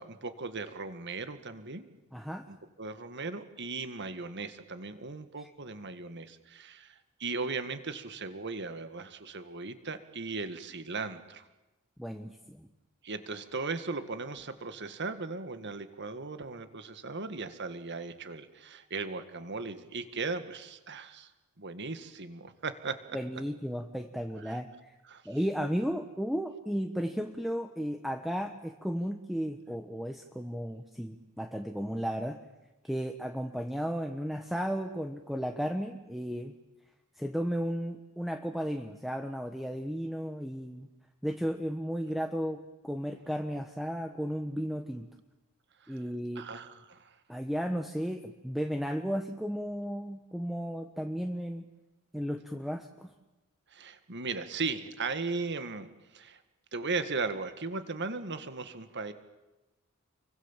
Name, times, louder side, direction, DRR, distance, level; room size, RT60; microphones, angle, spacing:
voice 1, 0.0-1.9 2.5-11.5 13.0-21.3 21.6-23.2 24.4-24.6 25.1-25.2 45.8-46.0 46.4-47.1 53.7-56.4 56.7-59.1, right 4 dB, 55° right, 10 dB, 1.9 m, -37 dB
voice 2, 2.1-2.5 5.4-5.5 12.0-12.7 23.1-24.9 25.2-32.4 32.8-36.5 37.2-40.9 41.2-45.1 45.9-46.4 47.3-51.7 52.1-53.1, equal, ahead, 5 dB, 1.2 m, -34 dB
30.0 x 23.5 x 7.4 m, 1.1 s
head